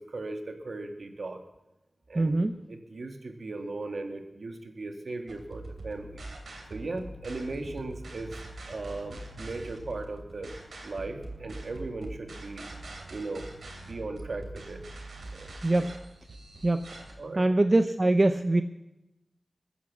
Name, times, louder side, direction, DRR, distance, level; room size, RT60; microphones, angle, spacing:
voice 1, 0.0-1.4 2.1-6.3 6.7-8.4 8.7-10.6 10.8-12.7 13.1-13.5 13.8-14.8 15.3-15.8 17.2-17.5, right 2 dB, 65° right, 5 dB, 2.0 m, -38 dB
voice 2, 2.1-2.6 15.6-16.0 16.6-16.9 17.4-18.6, right 2 dB, 35° right, 8 dB, 0.7 m, -23 dB
sound 1, 5.3-17.1, right 2 dB, 85° right, 3.1 m, -43 dB
21.0 x 9.4 x 7.3 m, 0.94 s
wide cardioid pair, 100°, 0 cm